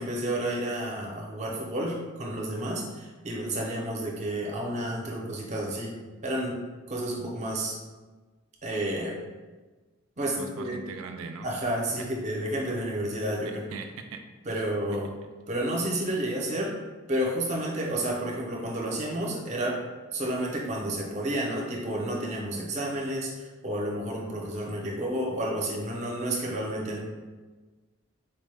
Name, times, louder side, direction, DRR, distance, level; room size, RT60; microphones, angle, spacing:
voice 1, 0.0-5.9 6.2-6.6 6.9-7.8 8.6-9.2 10.2-10.8 11.4-13.7 14.5-15.1 15.5-16.7 17.1-19.8 20.1-27.0, right 1 dB, 35° right, -2 dB, 0.6 m, -30 dB
voice 2, 10.4-11.6 12.0-12.1 13.4-14.2 14.5-14.6, right 4 dB, 85° right, 5 dB, 0.3 m, -40 dB
3.9 x 2.1 x 3.3 m, 1.3 s
head